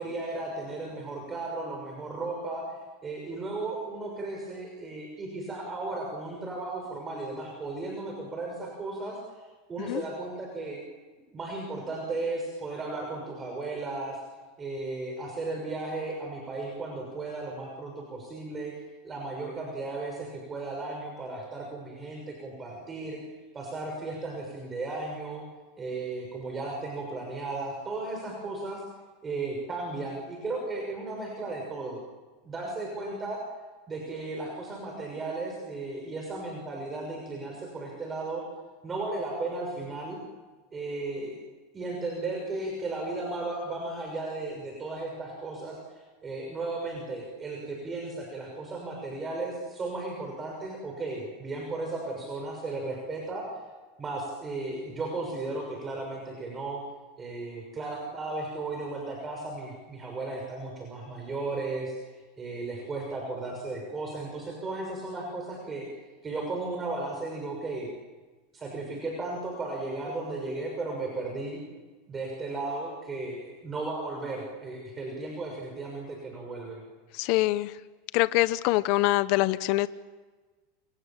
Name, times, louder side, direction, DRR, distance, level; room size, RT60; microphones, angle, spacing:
voice 1, 0.0-2.6 3.0-9.2 9.7-10.8 11.3-14.2 14.6-18.7 19.0-23.2 23.5-25.4 25.8-28.8 29.2-32.0 32.4-33.4 33.9-38.4 38.8-40.2 40.7-41.4 41.7-53.5 54.0-56.8 57.2-65.9 66.2-67.9 68.5-71.6 72.1-76.8, right 2 dB, 20° right, 1 dB, 6.3 m, -35 dB
voice 2, 77.1-77.7 78.1-79.9, left 18 dB, 55° left, 14 dB, 0.8 m, -24 dB
29.5 x 27.0 x 7.4 m, 1.3 s
supercardioid pair, 140°, 0 cm